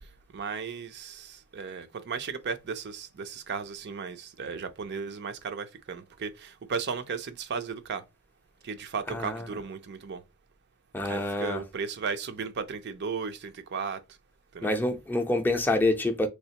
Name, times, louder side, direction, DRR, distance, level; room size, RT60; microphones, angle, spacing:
voice 1, 0.3-8.0 8.6-10.2 11.0-14.0 14.5-14.7, right 5 dB, 55° right, 0.5 m, -35 dB
voice 2, 9.1-9.6 10.9-11.6 14.6-16.3, left 2 dB, 10° left, 0.5 m, -27 dB
3.4 x 3.2 x 2.8 m
head